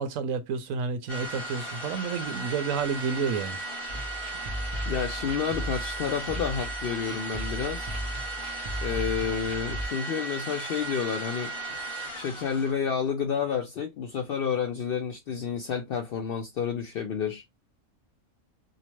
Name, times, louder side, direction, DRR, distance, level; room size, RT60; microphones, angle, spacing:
voice 1, 0.0-3.6, right 5 dB, 75° right, 1.0 m, -30 dB
sound 1, 1.1-12.7, right 2 dB, 25° left, 0.8 m, -36 dB
sound 2, 3.9-9.9, equal, 45° right, 0.3 m, -36 dB
voice 2, 4.8-7.9 8.8-11.5 12.1-17.4, left 7 dB, 65° left, 0.5 m, -30 dB
2.7 x 2.0 x 2.9 m
omnidirectional pair, 1.4 m